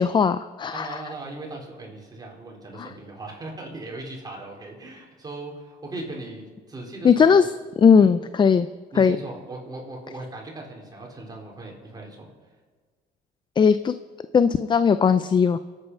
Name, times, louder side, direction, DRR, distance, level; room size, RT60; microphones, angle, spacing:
voice 1, 0.0-1.0 2.8-2.9 7.0-7.5 7.8-8.7 9.0-9.2 13.6-13.9 14.3-15.6, left 6 dB, 25° left, 13 dB, 0.5 m, -18 dB
voice 2, 0.7-7.3 8.0-8.1 8.9-12.5, right 2 dB, 25° right, -1 dB, 4.3 m, -38 dB
26.0 x 9.0 x 5.6 m, 1.5 s
cardioid pair, 110°, 17 cm